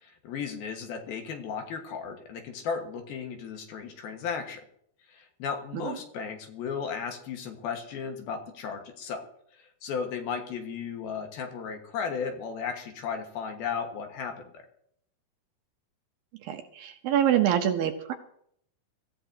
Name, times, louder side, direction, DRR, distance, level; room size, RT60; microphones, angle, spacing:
voice 1, 0.0-4.6 5.1-9.2 9.5-14.6, left 6 dB, 70° left, 4 dB, 3.1 m, -35 dB
voice 2, 16.5-18.1, right 10 dB, 75° right, 6 dB, 2.3 m, -25 dB
23.5 x 15.0 x 2.8 m, 0.69 s
omnidirectional pair, 4.8 m